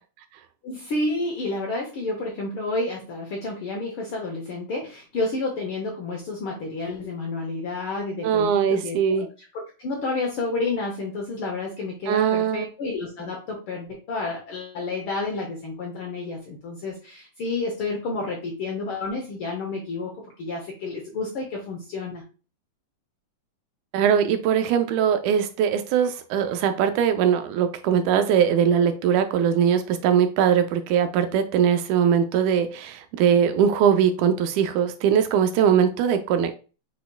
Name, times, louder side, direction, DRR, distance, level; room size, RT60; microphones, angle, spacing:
voice 1, 0.6-9.3 9.8-22.2, left 3 dB, 70° left, 0 dB, 1.3 m, -30 dB
voice 2, 8.2-9.3 12.1-12.7 23.9-36.5, right 8 dB, 85° right, 8 dB, 2.0 m, -21 dB
5.6 x 4.2 x 2.2 m, 0.34 s
omnidirectional pair, 3.4 m